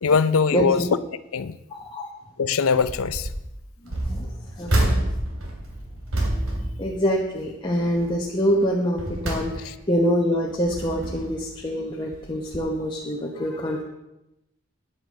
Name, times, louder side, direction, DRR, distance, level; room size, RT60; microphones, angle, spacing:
voice 1, 0.0-0.8 1.3-1.5 2.4-3.3 9.6-9.7, left 5 dB, 80° left, 15 dB, 0.6 m, -21 dB
voice 2, 1.7-2.1 3.9-4.3 4.6-5.0 6.8-13.8, equal, 20° left, -2 dB, 1.1 m, -25 dB
sound 1, 2.8-3.4 3.9-7.5 7.9-8.2 8.7-10.0 10.5-11.5 12.1-12.3 12.5-12.6, right 1 dB, 75° right, 2.8 m, -28 dB
9.9 x 8.7 x 6.5 m, 0.91 s
head